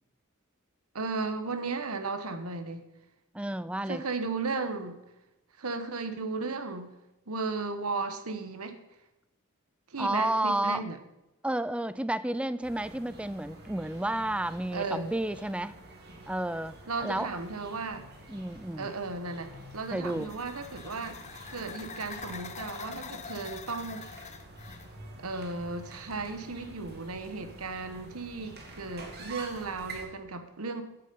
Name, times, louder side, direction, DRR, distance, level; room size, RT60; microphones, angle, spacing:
voice 1, 0.9-2.8 3.8-5.0 5.6-6.9 7.3-8.8 9.9-11.0 14.7-15.1 16.9-18.0 18.8-21.2 21.5-24.0 25.2-30.8, right 3 dB, 85° right, 9 dB, 1.2 m, -35 dB
voice 2, 3.3-4.0 10.0-10.8 11.4-15.8 16.3-17.4 18.3-18.9 19.9-20.3, right 1 dB, 5° right, 15 dB, 0.3 m, -31 dB
sound 1, 12.6-30.1, right 2 dB, 50° right, 2.3 m, -48 dB
sound 2, 19.6-24.9, left 6 dB, 35° left, 0.8 m, -45 dB
12.5 x 8.2 x 5.5 m, 0.97 s
head